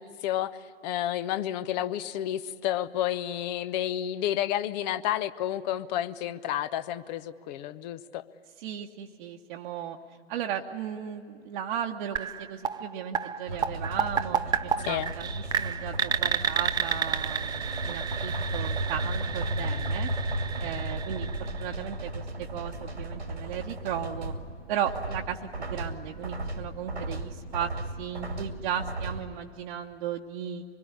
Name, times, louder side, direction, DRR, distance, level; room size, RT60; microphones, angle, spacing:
voice 1, 0.0-8.2 14.9-15.1, left 12 dB, 40° left, 13 dB, 1.0 m, -31 dB
voice 2, 8.6-10.0 10.3-15.3 15.6-20.1 20.6-24.3 24.7-27.7 28.0-30.6, right 9 dB, 50° right, 0 dB, 1.3 m, -35 dB
sound 1, 12.2-22.0, right 7 dB, 15° right, 0.6 m, -32 dB
sound 2, 13.5-29.3, right 2 dB, 85° right, 2.4 m, -35 dB
25.0 x 22.0 x 9.9 m, 2.3 s
figure-of-eight pair, 95°, 32 cm